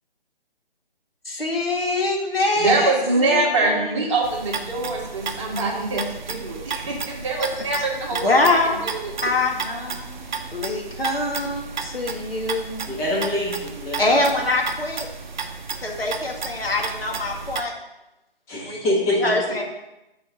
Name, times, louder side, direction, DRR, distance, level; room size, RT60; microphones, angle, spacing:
voice 1, 1.3-3.9 8.2-8.8 9.2-12.9 14.0-15.1 15.8-17.7 18.6-18.8 19.1-19.6, left 2 dB, 85° left, 0 dB, 1.8 m, -24 dB
voice 2, 2.6-8.3 8.8-9.1, right 2 dB, 30° right, -1 dB, 1.5 m, -24 dB
sound 1, 4.2-17.6, right 5 dB, 55° right, 0.7 m, -33 dB
voice 3, 12.9-14.3 18.5-19.3, left 1 dB, 10° left, -5 dB, 1.1 m, -25 dB
7.5 x 4.4 x 5.0 m, 0.94 s
figure-of-eight pair, 145°, 29 cm